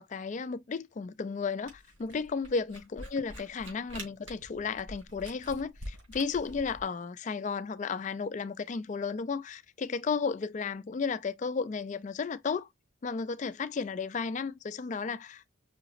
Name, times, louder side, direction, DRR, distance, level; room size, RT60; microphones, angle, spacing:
voice 1, 0.0-12.7 13.0-15.4, left 5 dB, 35° left, 0.3 m, -33 dB
Camera, 1.7-6.8, right 1 dB, 80° right, 3.1 m, -45 dB
5.7 x 2.9 x 2.4 m
head